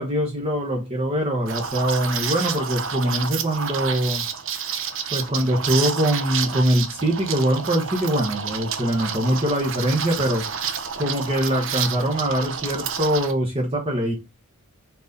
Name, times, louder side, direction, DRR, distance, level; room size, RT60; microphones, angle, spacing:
voice 1, 0.0-4.2 5.1-10.4 11.0-14.1, right 1 dB, 25° right, 0 dB, 1.1 m, -23 dB
Liquid, 1.5-13.3, right 7 dB, 60° right, 0.8 m, -29 dB
4.6 x 4.1 x 5.2 m, 0.26 s
head